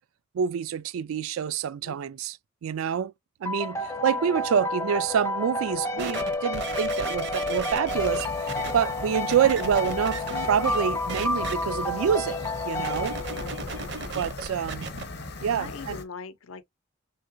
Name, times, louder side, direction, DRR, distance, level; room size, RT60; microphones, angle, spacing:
voice 1, 0.3-2.4 2.6-3.1 3.4-12.4 12.6-13.2 14.2-14.9 15.4-16.0, right 8 dB, 90° right, 0.3 m, -27 dB
sound 1, 3.5-13.8, left 2 dB, 15° left, 0.4 m, -30 dB
voice 2, 4.0-4.4 13.3-14.0 15.6-16.6, left 5 dB, 90° left, 0.6 m, -42 dB
sound 2, 6.0-8.7 9.3-10.8 11.1-11.5 12.8-15.0 15.7-15.8, right 4 dB, 55° right, 0.7 m, -36 dB
sound 3, 7.9-16.0, left 2 dB, 55° left, 0.8 m, -39 dB
3.6 x 3.3 x 2.5 m
head